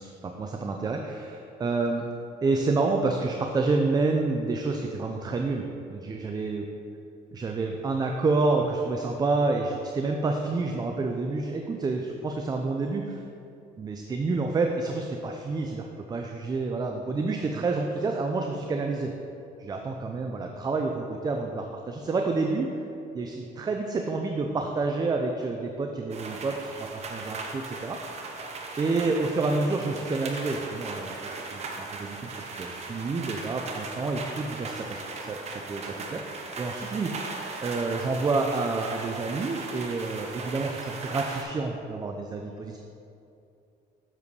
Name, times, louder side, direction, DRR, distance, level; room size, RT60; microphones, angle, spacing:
voice 1, 0.0-2.1 2.4-6.6 7.3-13.2 13.8-19.1 19.6-22.8 23.1-28.3 28.8-31.2 31.5-37.1 37.6-42.8, right 3 dB, 25° right, 3 dB, 0.4 m, -29 dB
sound 1, 26.1-41.4, right 3 dB, 40° right, 0.9 m, -38 dB
7.4 x 6.9 x 3.2 m, 2.7 s
cardioid pair, 110°, 17 cm